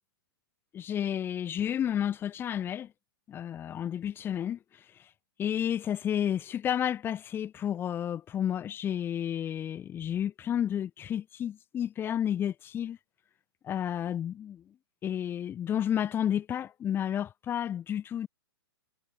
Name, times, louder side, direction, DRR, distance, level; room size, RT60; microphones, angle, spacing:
voice 1, 0.7-2.9 3.3-4.6 5.4-13.0 13.6-14.6 15.0-18.3, left 10 dB, 15° left, 0.5 m, -31 dB
hypercardioid pair, 130°, 13 cm